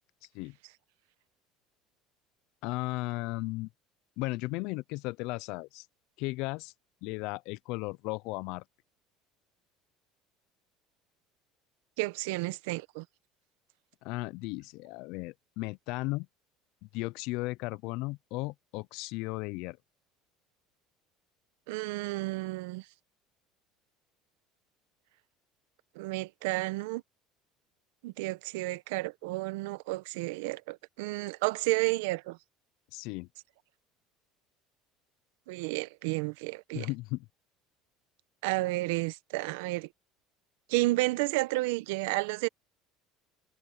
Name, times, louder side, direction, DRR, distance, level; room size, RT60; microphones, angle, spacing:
voice 1, 2.6-3.7 4.2-5.9 6.2-6.7 7.0-8.6 14.0-16.3 16.9-19.8 32.9-33.3 36.7-37.3, left 22 dB, 70° left, 0.5 m, -35 dB
voice 2, 12.0-13.0 21.7-22.8 25.9-27.0 28.0-32.4 35.5-36.9 38.4-39.9 40.7-42.5, right 21 dB, 80° right, 1.1 m, -31 dB
supercardioid pair, 85°, 0 cm